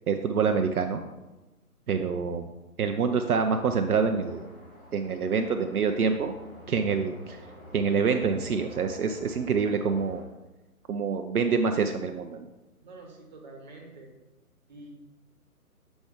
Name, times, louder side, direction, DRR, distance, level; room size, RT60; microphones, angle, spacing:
voice 1, 0.1-1.0 1.9-2.5 2.8-4.5 4.9-6.3 6.7-7.4 7.7-10.2 10.9-12.5, right 5 dB, 70° right, 5 dB, 0.6 m, -26 dB
sound 1, 3.2-10.2, left 1 dB, 20° left, 1.9 m, -49 dB
voice 2, 12.8-14.1 14.7-14.9, right 2 dB, 30° right, 0 dB, 1.2 m, -47 dB
6.0 x 5.2 x 3.6 m, 1.1 s
figure-of-eight pair, 145°, 46 cm